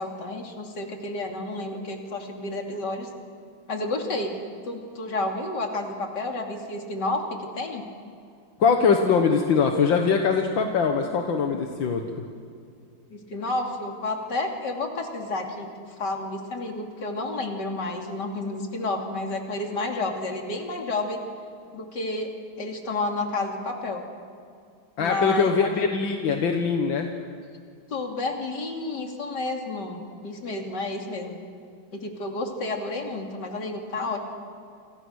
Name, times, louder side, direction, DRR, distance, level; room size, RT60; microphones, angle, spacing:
voice 1, 0.0-3.1 3.7-4.4 4.6-7.9 13.1-15.7 16.0-21.2 21.7-22.3 22.6-24.0 25.0-25.9 27.9-31.4 31.9-34.2, left 2 dB, 65° left, 2 dB, 3.4 m, -30 dB
voice 2, 8.6-12.2 25.0-27.1, left 5 dB, 85° left, 3 dB, 2.2 m, -22 dB
29.0 x 27.5 x 6.5 m, 2.3 s
omnidirectional pair, 2.0 m